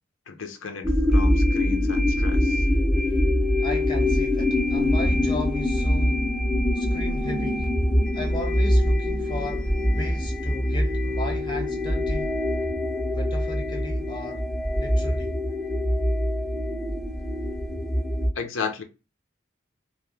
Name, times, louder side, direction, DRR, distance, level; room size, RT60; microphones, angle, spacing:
voice 1, 0.3-2.6 18.3-18.8, left 5 dB, 90° left, 0.5 m, -34 dB
sound 1, 0.8-18.3, left 1 dB, ahead, 0.4 m, -24 dB
voice 2, 3.6-6.3 6.7-7.7 8.1-12.4 13.1-14.4 14.8-15.4, left 2 dB, 25° left, 0.7 m, -36 dB
2.1 x 2.0 x 3.1 m
head